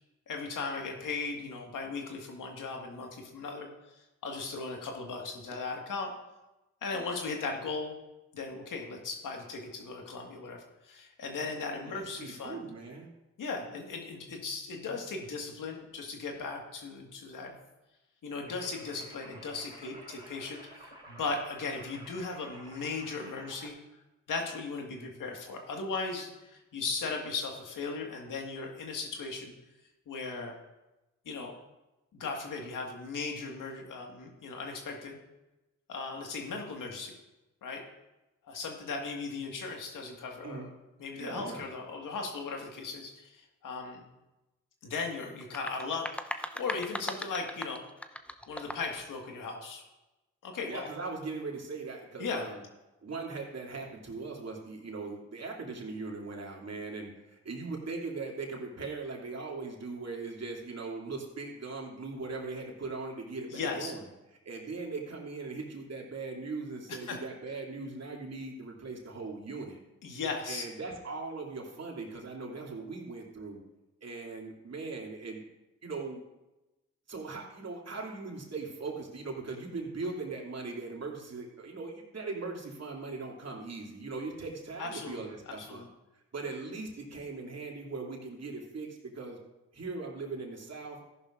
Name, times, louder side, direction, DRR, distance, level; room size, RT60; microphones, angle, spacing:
voice 1, 0.3-3.7 4.0-6.1 6.8-8.0 8.3-12.6 13.4-17.5 18.2-23.7 24.3-29.5 30.1-30.5 31.3-31.5 32.1-35.2 35.9-37.1 37.6-37.8 38.4-40.7 41.0-44.0 44.8-47.8 48.5-49.8 50.4-50.9 52.2-52.5 63.5-63.9 66.9-67.2 70.0-70.6 84.8-85.9, left 4 dB, 75° left, 2 dB, 1.9 m, -37 dB
voice 2, 11.8-13.1 40.4-40.7 41.2-41.6 50.7-52.6 53.0-64.1 64.4-69.8 70.5-73.6 74.0-75.4 75.8-76.2 77.1-85.8 86.3-89.4 89.7-91.0, right 3 dB, 50° right, -1 dB, 2.8 m, -39 dB
sound 1, 18.4-23.7, right 1 dB, 15° right, 4.0 m, -51 dB
sound 2, 45.4-49.0, equal, 5° left, 0.7 m, -39 dB
14.0 x 11.0 x 2.6 m, 1.0 s
supercardioid pair, 45°, 32 cm